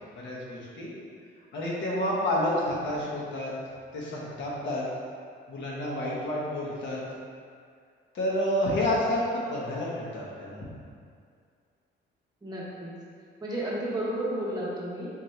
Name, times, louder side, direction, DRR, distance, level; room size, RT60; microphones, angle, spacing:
voice 1, 0.1-0.9 1.5-3.5 3.9-4.8 5.5-7.0 8.1-10.6, left 1 dB, 70° left, -5 dB, 1.1 m, -29 dB
voice 2, 2.5-2.9 12.4-12.9 13.4-15.1, right 1 dB, 20° right, -7 dB, 0.9 m, -33 dB
4.2 x 2.8 x 3.2 m, 2.2 s
cardioid pair, 90°, 20 cm